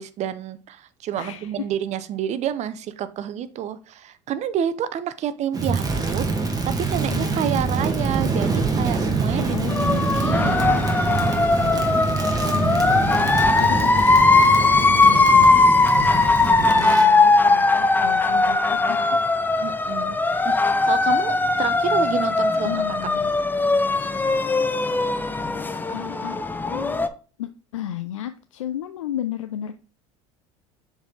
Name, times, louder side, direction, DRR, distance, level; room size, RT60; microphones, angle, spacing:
voice 1, 0.0-6.3 6.6-9.6 10.1-10.9 19.6-20.2 20.4-20.5 20.9-22.8, right 9 dB, 45° right, 0.7 m, -29 dB
voice 2, 1.2-1.7 7.1-7.7 9.5-10.1 10.4-12.2 12.5-14.3 14.7-18.6 18.9-19.2 22.6-23.3 25.1-25.5 25.9-26.4 26.7-27.1 27.4-29.7, left 11 dB, 90° left, 0.4 m, -34 dB
Crackle, 5.5-17.1, right 4 dB, 25° right, 1.7 m, -25 dB
sound 1, 9.7-27.1, left 3 dB, 10° left, 0.6 m, -19 dB
7.0 x 4.0 x 3.9 m
hypercardioid pair, 80°, 16 cm